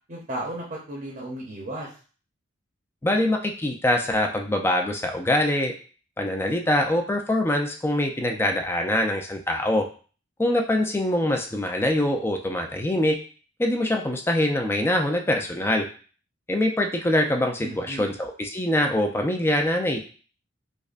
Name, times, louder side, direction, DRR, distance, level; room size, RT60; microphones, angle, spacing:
voice 1, 0.1-1.9 17.6-18.1, right 1 dB, 40° right, -2 dB, 0.7 m, -34 dB
voice 2, 3.0-5.7 6.2-9.9 10.4-13.2 13.6-15.9 16.5-20.0, left 1 dB, 10° left, 3 dB, 0.4 m, -24 dB
5.1 x 2.2 x 2.4 m, 0.39 s
head